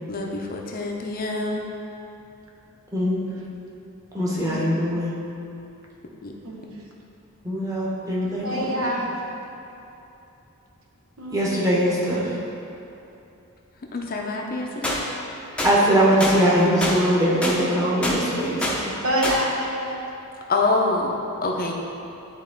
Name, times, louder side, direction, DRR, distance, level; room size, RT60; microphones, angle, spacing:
voice 1, 0.1-1.6 4.4-4.7 6.2-6.3 13.9-15.0 20.5-21.1 21.4-21.7, left 3 dB, 45° left, 0 dB, 0.6 m, -26 dB
voice 2, 2.9-3.4 4.1-5.1 7.4-8.9 11.3-12.3 15.6-18.9, equal, 15° right, -6 dB, 1.2 m, -21 dB
voice 3, 8.4-9.2 11.2-11.5 15.3-15.4 19.0-20.0, equal, 70° right, -1 dB, 1.0 m, -26 dB
sound 1, 14.8-15.0 15.6-15.7 16.2-16.4 16.8-17.0 17.4-17.6 18.0-18.2 18.6-18.8 19.2-19.4, left 1 dB, 5° left, 0.7 m, -25 dB
10.5 x 3.6 x 3.6 m, 2.8 s
head